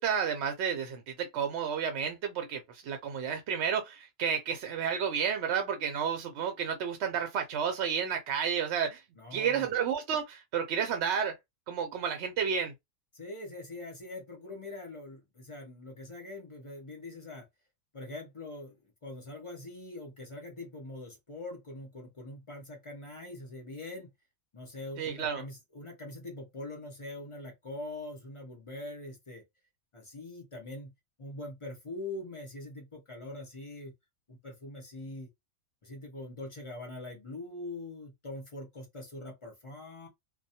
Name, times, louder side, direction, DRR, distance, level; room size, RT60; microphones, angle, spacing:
voice 1, 0.0-9.0 9.3-11.3 11.7-12.7 25.0-25.4, right 7 dB, 65° right, 0.7 m, -31 dB
voice 2, 9.2-9.7 13.1-17.5 17.9-24.1 24.5-29.4 29.9-30.9 31.2-33.9 34.3-35.3 35.8-40.1, left 2 dB, 35° left, 0.5 m, -43 dB
2.2 x 2.1 x 2.7 m
omnidirectional pair, 1.4 m